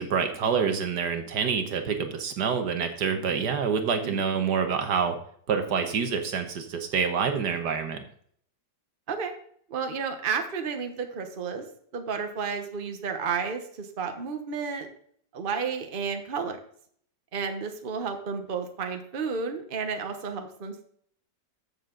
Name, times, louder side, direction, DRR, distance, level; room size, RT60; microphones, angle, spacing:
voice 1, 0.0-5.2 5.5-8.0, right 6 dB, 75° right, 7 dB, 1.7 m, -27 dB
voice 2, 9.7-11.6 11.9-14.9 15.3-16.6 17.3-20.8, right 5 dB, 35° right, 6 dB, 1.2 m, -32 dB
14.0 x 6.9 x 3.9 m, 0.62 s
omnidirectional pair, 1.8 m